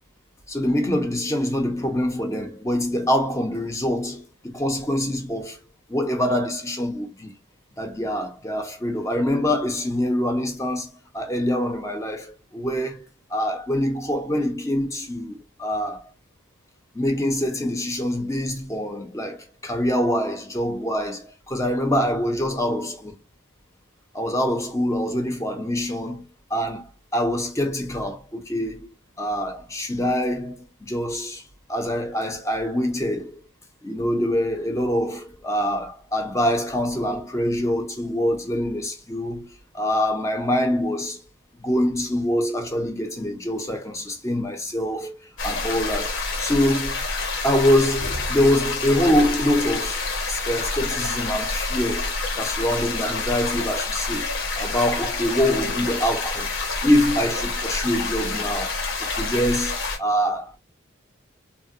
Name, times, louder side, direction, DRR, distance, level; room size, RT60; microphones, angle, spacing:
voice 1, 0.5-5.6 5.9-7.3 7.8-16.0 16.9-23.2 24.1-26.2 26.5-28.9 29.2-31.4 31.7-33.4 33.8-39.5 39.7-41.2 41.6-45.2 45.4-47.0 47.4-50.0 50.3-54.3 54.6-56.5 56.8-58.7 59.0-60.6, equal, 15° left, 0.5 m, -25 dB
sound 1, 45.4-60.0, left 3 dB, 60° left, 0.9 m, -28 dB
3.5 x 2.1 x 2.5 m
head